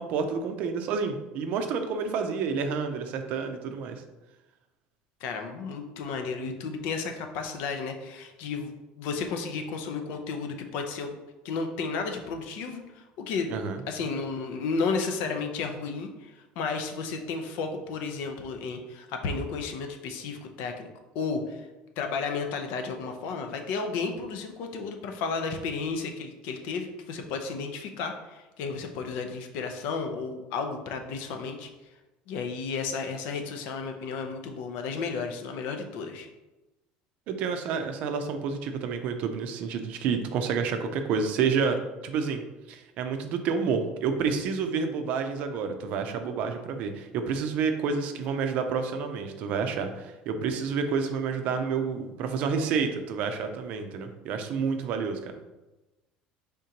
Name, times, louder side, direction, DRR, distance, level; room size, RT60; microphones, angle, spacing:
voice 1, 0.0-4.0 13.5-13.8 37.3-41.8 42.0-42.4 42.7-55.3, right 5 dB, 50° right, 6 dB, 0.5 m, -29 dB
voice 2, 5.2-11.1 11.4-13.6 13.9-20.9 21.1-21.7 22.0-31.7 32.3-36.3, left 4 dB, 65° left, 5 dB, 0.6 m, -33 dB
5.1 x 3.6 x 2.9 m, 1.1 s
cardioid pair, 165°, 3 cm